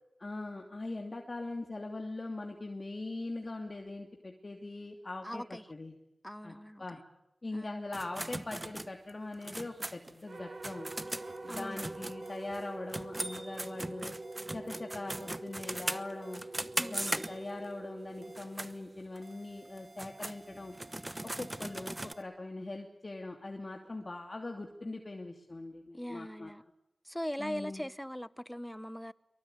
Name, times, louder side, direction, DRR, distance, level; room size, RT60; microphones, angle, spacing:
voice 1, 0.2-5.4 5.7-5.9 6.4-7.0 7.4-10.9 11.4-14.1 14.5-16.4 16.9-20.7 21.4-26.5 27.4-27.8, left 2 dB, 45° left, 2.9 m, -41 dB
voice 2, 5.2-5.6 6.2-6.8 7.5-7.8 11.5-11.9 16.8-17.0 25.9-26.6 27.0-29.1, equal, 5° left, 0.9 m, -40 dB
sound 1, 7.9-12.6 12.9-17.7 18.2-18.7 19.2-19.3 19.8-22.1, right 1 dB, 25° right, 1.0 m, -39 dB
sound 2, 10.3-19.6, right 2 dB, 65° right, 6.8 m, -45 dB
sound 3, 11.2-11.4 12.2-12.4 13.2-13.4 14.2-14.4 15.2-15.4 16.2-16.4 17.2-17.4 18.2-18.4 19.2-22.2, right 2 dB, 45° right, 2.4 m, -57 dB
24.5 x 23.0 x 9.3 m
wide cardioid pair, 55°, 0 cm